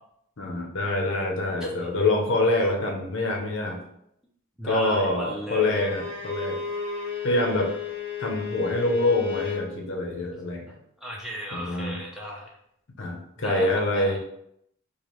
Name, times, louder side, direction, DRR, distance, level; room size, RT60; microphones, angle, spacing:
voice 1, 0.4-3.8 4.6-6.6 7.2-7.7 8.2-10.7 11.5-12.0 13.0-14.2, left 2 dB, 55° left, 1 dB, 0.6 m, -25 dB
voice 2, 1.6-1.9 4.6-5.8 11.0-12.5 13.4-13.7 13.9-14.2, equal, ahead, -3 dB, 0.3 m, -35 dB
Bowed string instrument, 5.6-9.7, left 7 dB, 55° right, 0.9 m, -33 dB
3.2 x 2.3 x 3.0 m, 0.75 s
head